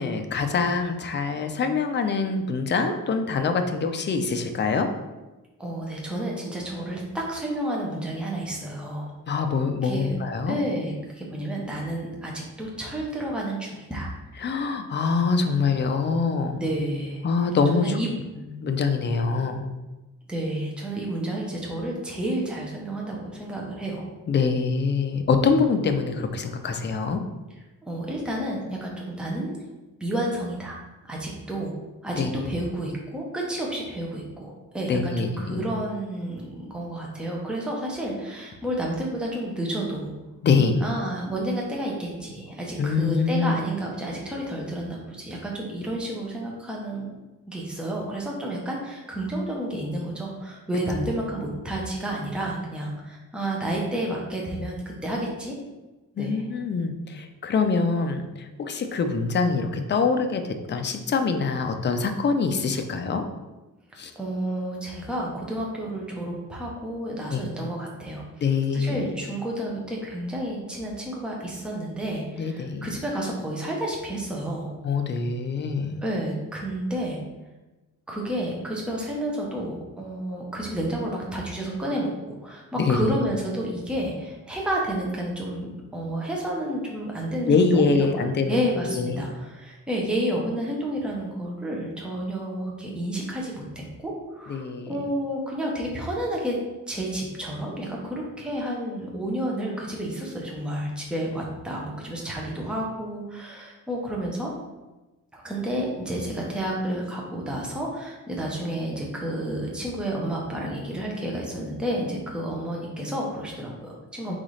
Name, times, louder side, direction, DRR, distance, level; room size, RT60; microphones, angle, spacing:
voice 1, 0.0-4.9 9.3-10.6 14.4-16.6 17.2-18.0 18.4-19.7 24.3-27.2 32.2-32.3 34.9-35.7 40.4-40.8 42.8-43.6 56.2-63.3 64.0-64.1 67.3-67.4 68.4-69.0 72.4-72.9 74.8-75.9 82.8-83.2 87.5-89.2 94.5-95.0 114.3-114.4, left 4 dB, 35° left, 7 dB, 0.4 m, -24 dB
voice 2, 5.6-9.1 9.8-10.2 10.5-14.1 16.6-17.2 17.7-18.1 20.3-24.1 27.9-29.5 30.0-30.8 31.1-31.7 32.0-40.1 40.8-47.2 47.5-55.6 56.2-56.4 64.2-68.2 68.7-74.7 76.0-77.2 78.1-93.6 94.0-96.6 96.9-104.5 105.3-114.4, right 1 dB, 5° right, -3 dB, 0.7 m, -30 dB
4.0 x 3.8 x 3.1 m, 1.1 s
wide cardioid pair, 165°, 33 cm